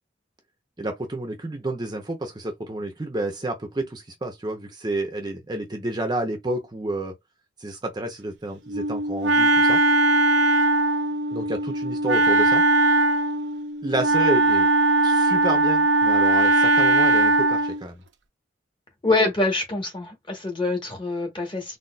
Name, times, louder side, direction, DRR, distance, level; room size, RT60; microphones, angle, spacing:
voice 1, 0.8-7.1 7.6-9.8 11.3-12.6 13.8-14.7 15.0-18.0, right 1 dB, 20° right, 0.6 m, -30 dB
Wind instrument woodwind instrument, 8.7-17.8, right 2 dB, 70° right, 0.6 m, -20 dB
voice 2, 19.0-21.8, left 2 dB, 25° left, 1.1 m, -25 dB
3.9 x 2.3 x 2.2 m
head